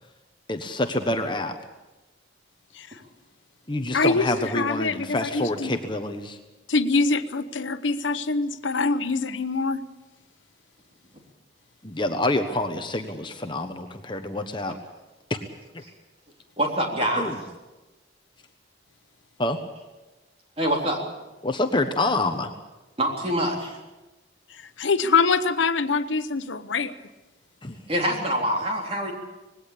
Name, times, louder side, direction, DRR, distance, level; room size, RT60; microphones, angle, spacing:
voice 1, 0.5-1.6 3.7-6.4 11.8-14.7 15.3-15.4 15.7-15.8 17.2-17.4 19.4-19.6 21.4-22.5 27.6-27.8, left 2 dB, 25° left, 6 dB, 1.2 m, -27 dB
voice 2, 3.9-5.7 6.7-9.8 24.5-26.9, left 4 dB, 85° left, 11 dB, 0.9 m, -24 dB
voice 3, 16.6-17.3 20.6-21.0 23.0-23.8 27.9-29.1, right 1 dB, 30° right, 1 dB, 3.6 m, -25 dB
19.5 x 17.0 x 8.6 m, 1.1 s
head